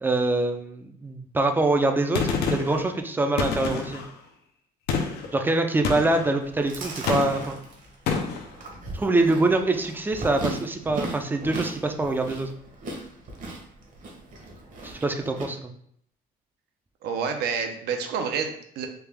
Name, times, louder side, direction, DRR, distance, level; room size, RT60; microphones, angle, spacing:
voice 1, 0.0-4.0 5.3-7.6 8.9-12.5 14.8-15.7, right 2 dB, 10° right, 5 dB, 0.4 m, -24 dB
Gunshot gunfire, 2.1-2.8 3.4-4.1 4.9-5.3 5.8-6.3 7.1-7.6 8.1-8.5, left 5 dB, 75° left, 0.6 m, -27 dB
Chewing mastication, 6.4-15.5, right 2 dB, 50° right, 0.9 m, -37 dB
voice 2, 17.0-18.9, right 6 dB, 75° right, 5 dB, 0.6 m, -28 dB
3.4 x 2.3 x 3.3 m, 0.68 s
cardioid pair, 110°, 17 cm